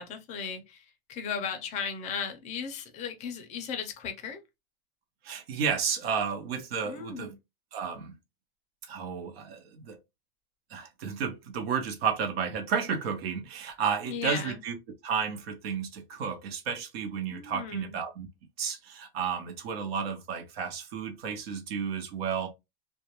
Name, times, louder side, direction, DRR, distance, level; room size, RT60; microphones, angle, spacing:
voice 1, 0.0-4.4 6.9-7.4 14.0-14.6 17.3-18.0, left 6 dB, 25° left, 0.4 m, -36 dB
voice 2, 5.2-7.3 7.7-8.1 8.9-10.0 10.7-14.8 15.0-18.3 18.6-22.5, right 6 dB, 80° right, 0.9 m, -32 dB
2.3 x 2.2 x 2.9 m
supercardioid pair, 155°, 30 cm